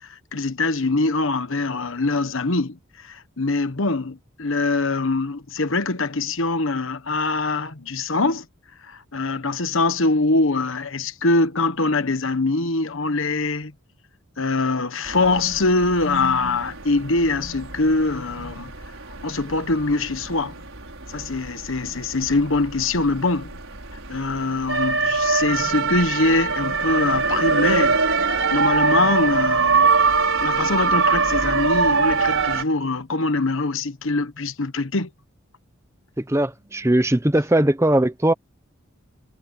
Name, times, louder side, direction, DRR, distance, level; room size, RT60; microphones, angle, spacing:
voice 1, 0.3-2.8 3.0-8.4 8.8-13.7 14.4-18.7 19.2-20.6 21.1-23.5 24.1-29.9 30.4-35.1, left 3 dB, 70° left, 1.2 m, -23 dB
sound 1, 15.1-32.6, right 4 dB, 75° right, 5.4 m, -24 dB
voice 2, 36.2-38.3, right 1 dB, 15° right, 0.8 m, -19 dB
head